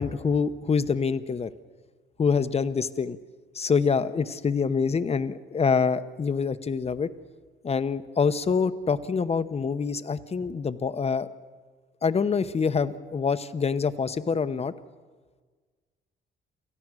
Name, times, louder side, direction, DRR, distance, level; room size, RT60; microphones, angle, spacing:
voice 1, 0.0-1.5 2.2-3.2 3.5-7.1 7.6-11.3 12.0-14.7, left 5 dB, 30° left, 12 dB, 0.9 m, -26 dB
28.0 x 14.5 x 6.3 m, 1.4 s
cardioid pair, 90°, 20 cm